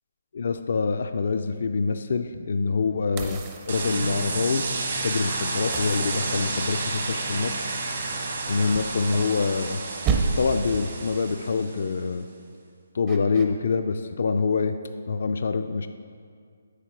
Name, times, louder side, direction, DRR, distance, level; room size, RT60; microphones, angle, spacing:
voice 1, 0.3-4.7 5.0-7.6 8.5-9.8 10.4-12.3 12.9-14.8 15.1-15.9, left 4 dB, 60° left, 9 dB, 0.3 m, -25 dB
sound 1, 3.2-4.5 5.7-6.9 8.7-9.7 10.0-10.7 13.1-13.5, right 5 dB, 20° right, 0.5 m, -30 dB
sound 2, 3.7-11.9, right 3 dB, 60° right, 1.2 m, -31 dB
8.2 x 5.8 x 4.5 m, 2.2 s
hypercardioid pair, 160°, 0 cm